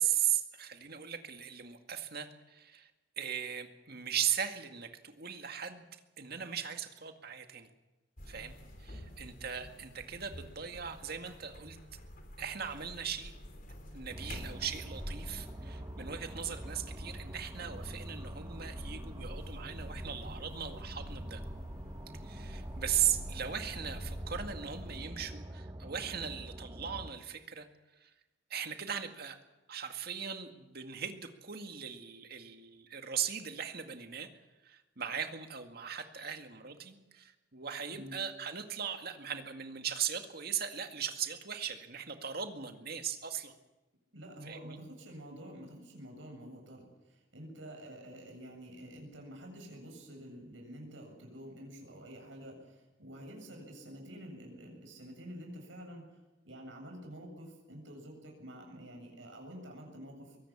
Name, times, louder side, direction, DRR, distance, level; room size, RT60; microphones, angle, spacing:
voice 1, 0.0-2.9 3.2-5.9 6.2-7.7 8.3-8.5 8.8-11.8 12.4-13.3 13.9-21.4 22.2-27.7 28.0-28.1 28.5-29.4 29.7-34.3 34.6-43.5 44.4-44.8, right 9 dB, 55° right, 6 dB, 2.1 m, -38 dB
sound 1, 8.2-25.0, equal, 50° left, 3.9 m, -47 dB
sound 2, 14.1-27.1, right 1 dB, 20° right, 0.9 m, -45 dB
voice 2, 44.1-56.2 56.4-60.4, equal, 85° right, 1 dB, 7.6 m, -48 dB
23.0 x 18.0 x 7.4 m, 1.1 s
head